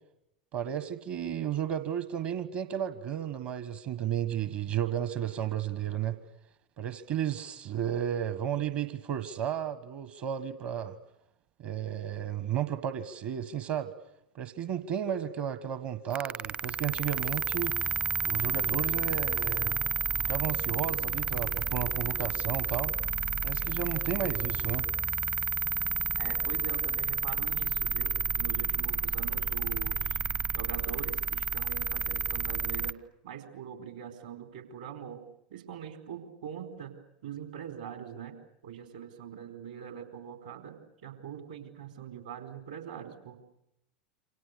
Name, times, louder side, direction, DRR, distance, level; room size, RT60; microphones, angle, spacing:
voice 1, 0.5-6.2 6.8-11.0 11.6-13.9 14.3-17.7 18.2-19.8 20.3-22.9 23.4-24.9, right 10 dB, 45° right, 12 dB, 1.4 m, -33 dB
sound 1, 16.1-32.9, right 5 dB, 30° right, 0.8 m, -31 dB
voice 2, 26.2-30.2 30.5-36.9 37.2-38.4 38.6-43.4, right 8 dB, 65° right, 6 dB, 4.3 m, -43 dB
28.0 x 25.5 x 6.7 m, 0.86 s
figure-of-eight pair, 80°, 5 cm